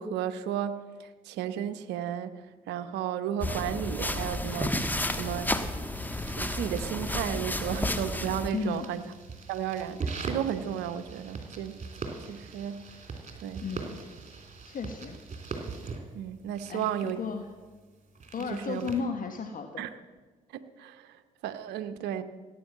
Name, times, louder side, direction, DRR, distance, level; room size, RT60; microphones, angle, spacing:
voice 1, 0.0-5.6 6.4-9.1 9.5-11.8 12.3-12.9 13.4-13.6 16.1-17.2 18.5-18.9 19.8-19.9 20.5-22.2, right 10 dB, 70° right, 10 dB, 0.8 m, -34 dB
sound 1, 3.4-8.5, left 1 dB, 10° left, 1.3 m, -31 dB
sound 2, 4.3-19.0, right 4 dB, 40° right, 3.3 m, -42 dB
voice 2, 8.5-8.9 13.6-13.9 14.7-15.2 16.7-17.5 18.3-19.8, left 5 dB, 50° left, 5 dB, 1.4 m, -34 dB
16.5 x 9.3 x 7.3 m, 1.3 s
hypercardioid pair, 50°, 18 cm